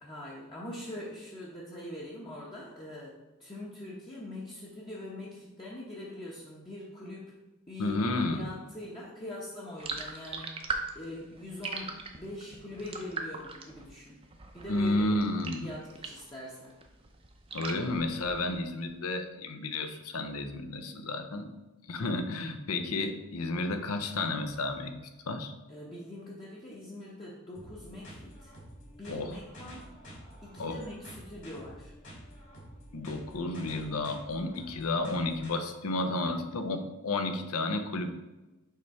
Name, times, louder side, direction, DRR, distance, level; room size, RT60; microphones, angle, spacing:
voice 1, 0.0-7.3 7.7-10.6 10.9-14.2 14.5-15.3 15.6-16.8 21.9-22.3 25.7-28.5 28.8-29.9 30.4-31.9 35.9-36.7, left 1 dB, 20° left, -6 dB, 0.8 m, -43 dB
voice 2, 7.8-8.5 14.7-15.7 17.5-21.5 21.8-24.9 25.3-25.5 29.1-29.4 30.6-30.8 32.9-38.2, left 2 dB, 85° left, 7 dB, 0.7 m, -32 dB
sound 1, 9.8-16.4 16.7-18.8, right 3 dB, 25° right, 0.5 m, -40 dB
sound 2, 27.5-35.5, equal, 60° left, 2.1 m, -49 dB
6.6 x 3.2 x 4.7 m, 1.1 s
head